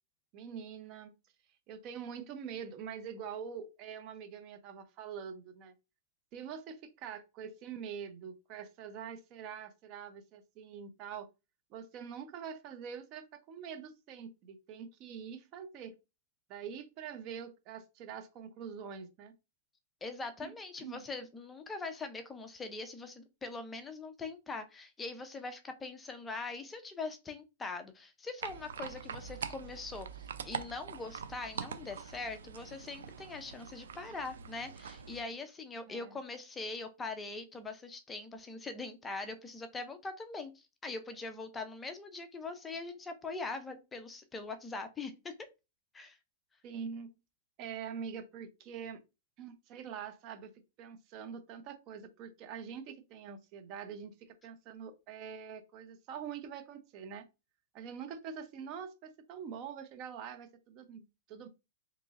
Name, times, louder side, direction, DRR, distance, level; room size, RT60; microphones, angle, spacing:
voice 1, 0.3-1.1 1.7-5.7 6.3-11.3 11.7-15.9 16.5-19.3 20.4-21.1 35.9-36.2 46.6-47.1 47.6-49.0 49.4-50.5 50.8-57.2 57.7-61.5, right 7 dB, 40° right, 0.6 m, -45 dB
voice 2, 20.0-45.5 45.9-46.2, left 3 dB, 15° left, 0.4 m, -42 dB
sound 1, 28.4-35.2, right 7 dB, 85° right, 0.4 m, -44 dB
3.7 x 2.9 x 2.4 m
hypercardioid pair, 135°, 0 cm